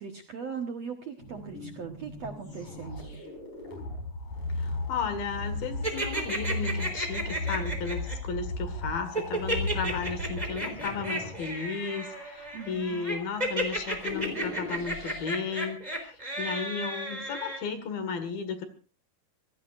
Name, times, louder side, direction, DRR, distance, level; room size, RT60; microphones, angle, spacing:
voice 1, 0.0-3.2 12.5-13.0, right 6 dB, 60° right, 3 dB, 1.9 m, -39 dB
sound 1, 1.2-15.3, left 2 dB, 45° left, 5.9 m, -37 dB
voice 2, 4.6-18.6, left 5 dB, 65° left, 9 dB, 3.5 m, -34 dB
sound 2, 5.8-8.1 9.1-17.6, right 1 dB, 10° right, 3.1 m, -33 dB
27.0 x 17.0 x 2.6 m, 0.36 s
omnidirectional pair, 4.9 m